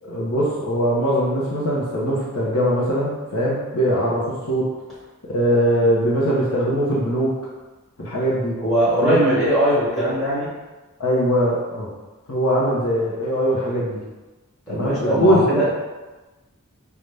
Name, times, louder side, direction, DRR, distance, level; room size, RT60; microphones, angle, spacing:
voice 1, 0.0-4.7 5.2-7.4 8.0-8.6 9.0-9.2 11.0-11.9 12.3-14.0 14.7-15.5, equal, 75° left, -5 dB, 0.8 m, -21 dB
voice 2, 8.6-10.5 14.7-15.7, right 1 dB, 5° left, -11 dB, 1.1 m, -20 dB
5.3 x 2.4 x 3.3 m, 1.2 s
head